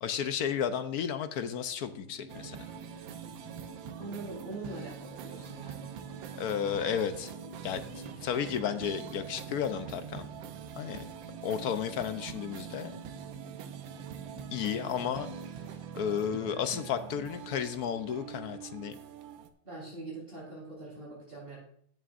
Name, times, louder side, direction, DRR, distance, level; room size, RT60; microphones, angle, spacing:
voice 1, 0.0-2.6 6.4-7.3 7.6-7.8 8.2-10.3 10.8-11.1 11.4-12.9 14.5-15.3 15.9-19.0, left 8 dB, 65° left, 10 dB, 1.0 m, -33 dB
sound 1, 1.8-15.5, left 1 dB, ahead, 2.8 m, -52 dB
sound 2, 2.3-19.5, right 8 dB, 85° right, 1.5 m, -44 dB
voice 2, 4.0-5.8 19.6-21.6, right 2 dB, 25° right, -5 dB, 4.3 m, -43 dB
16.5 x 7.6 x 2.5 m, 0.62 s
omnidirectional pair, 2.1 m